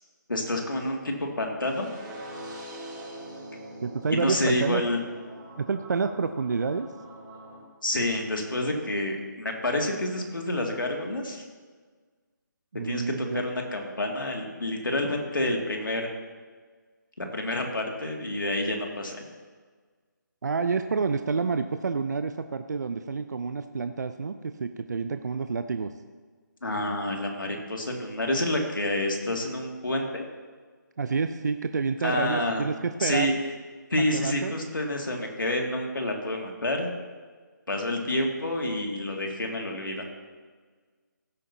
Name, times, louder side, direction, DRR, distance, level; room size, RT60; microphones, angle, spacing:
voice 1, 0.3-1.9 4.1-5.0 7.8-11.4 12.8-13.0 13.3-16.1 17.2-19.2 26.6-30.2 32.0-32.6 33.0-33.3 33.9-36.9 37.7-40.0, left 1 dB, 85° left, 1 dB, 2.3 m, -28 dB
sound 1, 1.6-7.6, right 1 dB, 20° right, 2.4 m, -43 dB
voice 2, 3.8-4.8 5.6-6.9 12.7-13.4 20.4-25.9 31.0-33.3 34.1-34.6, right 5 dB, 60° right, 9 dB, 0.5 m, -28 dB
16.0 x 8.4 x 2.8 m, 1.5 s
figure-of-eight pair, 160°, 11 cm